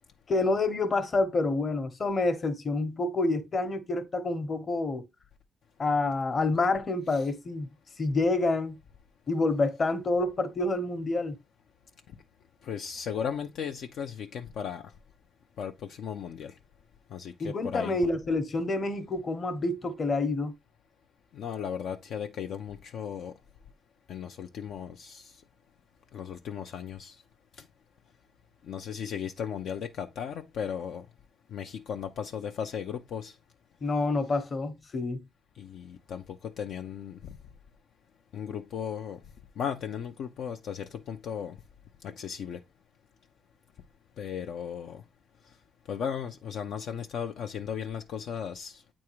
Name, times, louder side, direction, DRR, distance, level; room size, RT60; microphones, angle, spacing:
voice 1, 0.3-5.0 5.8-7.7 8.0-8.8 9.3-11.4 17.4-20.6 33.8-35.2, left 2 dB, 40° left, 1.1 m, -28 dB
voice 2, 12.6-14.9 15.6-16.5 17.1-18.0 21.3-23.3 24.1-25.3 26.1-27.1 28.7-31.1 31.5-33.3 35.6-37.3 38.3-39.2 39.6-41.6 42.0-42.6 44.2-45.0 45.9-48.8, left 8 dB, 70° left, 0.6 m, -36 dB
8.6 x 3.6 x 3.1 m
cardioid pair, 90°, 0 cm